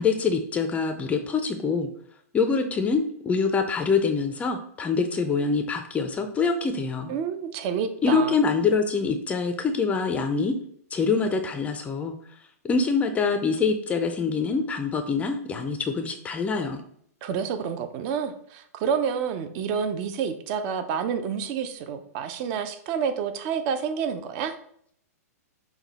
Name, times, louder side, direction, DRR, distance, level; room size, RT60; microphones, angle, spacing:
voice 1, 0.0-1.9 2.3-7.1 8.0-10.5 10.9-12.1 12.6-16.8, left 5 dB, 15° left, 6 dB, 0.4 m, -25 dB
voice 2, 7.1-8.4 17.2-24.6, right 7 dB, 40° right, 9 dB, 0.5 m, -29 dB
5.9 x 2.2 x 4.0 m, 0.65 s
hypercardioid pair, 130°, 9 cm